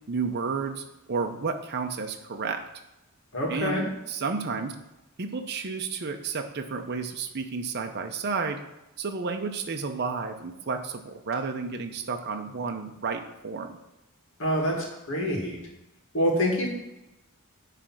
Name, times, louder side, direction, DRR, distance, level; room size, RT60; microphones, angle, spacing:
voice 1, 0.1-2.6 3.5-4.7 5.2-8.6 9.0-13.7, right 4 dB, 50° right, 5 dB, 0.6 m, -31 dB
voice 2, 3.3-3.8 14.4-15.6 16.1-16.7, equal, 65° left, -1 dB, 2.0 m, -26 dB
10.0 x 3.4 x 6.1 m, 0.96 s
head